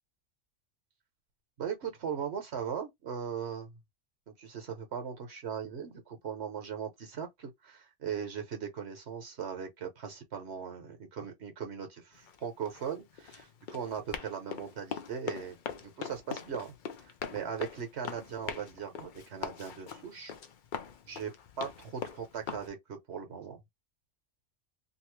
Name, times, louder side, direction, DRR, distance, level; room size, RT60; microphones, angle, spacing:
voice 1, 1.6-3.7 4.4-16.7 17.0-20.3 21.1-21.3 21.6-23.6, right 7 dB, 60° right, 1.2 m, -39 dB
Run, 12.1-22.7, left 7 dB, 55° left, 0.6 m, -42 dB
2.9 x 2.6 x 3.1 m
omnidirectional pair, 1.3 m